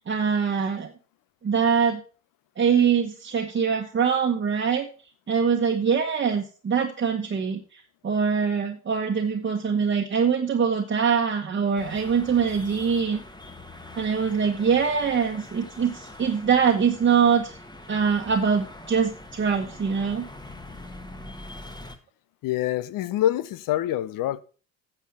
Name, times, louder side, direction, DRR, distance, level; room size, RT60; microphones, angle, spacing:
voice 1, 0.1-0.9 1.4-2.0 2.6-4.9 5.3-13.2 14.0-17.6 17.9-20.3, right 6 dB, 30° right, 1.3 m, -23 dB
sound 1, 11.8-22.0, left 1 dB, 10° left, 1.5 m, -43 dB
voice 2, 22.4-24.4, left 12 dB, 55° left, 0.8 m, -26 dB
9.3 x 6.9 x 5.6 m
hypercardioid pair, 60°, 40 cm